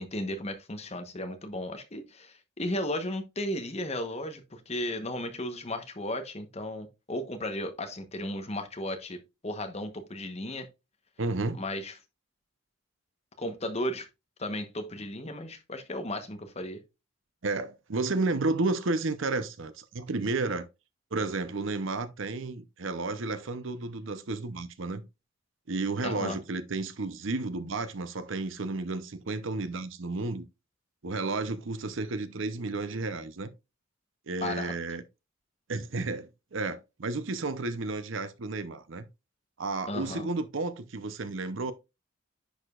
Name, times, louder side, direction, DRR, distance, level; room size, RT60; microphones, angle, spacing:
voice 1, 0.0-10.7 11.6-11.9 13.4-14.1 14.4-16.8 26.0-26.4 34.4-34.7 39.9-40.3, left 1 dB, 30° left, 1.0 m, -35 dB
voice 2, 11.2-11.6 17.4-20.7 21.1-25.0 25.7-30.5 31.0-33.5 34.3-35.0 35.7-39.1 39.6-41.7, right 3 dB, 70° right, 0.7 m, -32 dB
10.0 x 5.0 x 2.4 m
head